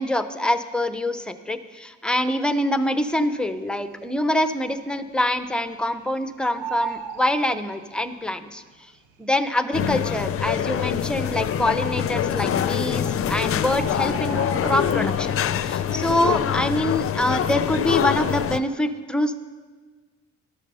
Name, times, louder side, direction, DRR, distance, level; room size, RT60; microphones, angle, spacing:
voice 1, 0.0-8.6 9.2-14.4 14.6-19.3, left 1 dB, 5° left, 10 dB, 0.6 m, -25 dB
Bird, 3.6-4.2 4.6-4.7 4.9-6.1 6.4-8.2 9.1-9.2 9.8-9.9 10.1-10.2 10.8-11.3 12.3-12.4 12.7-12.8 13.0-15.3 15.7-16.0 16.3-17.7 18.0-18.3, right 6 dB, 85° right, 0.8 m, -37 dB
sound 1, 9.7-18.6, left 9 dB, 50° left, 0.5 m, -25 dB
12.0 x 6.5 x 5.5 m, 1.4 s
cardioid pair, 90°, 30 cm